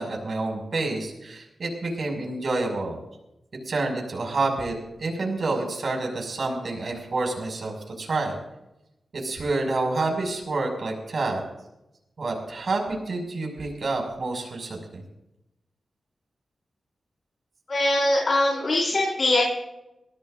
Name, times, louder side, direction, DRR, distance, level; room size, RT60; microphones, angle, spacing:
voice 1, 0.0-3.0 3.7-8.4 9.1-11.4 12.2-15.0, right 3 dB, 60° right, 1 dB, 5.8 m, -28 dB
voice 2, 17.7-19.4, left 1 dB, 50° left, -4 dB, 5.2 m, -22 dB
23.5 x 17.5 x 2.6 m, 0.90 s
wide cardioid pair, 100°, 0 cm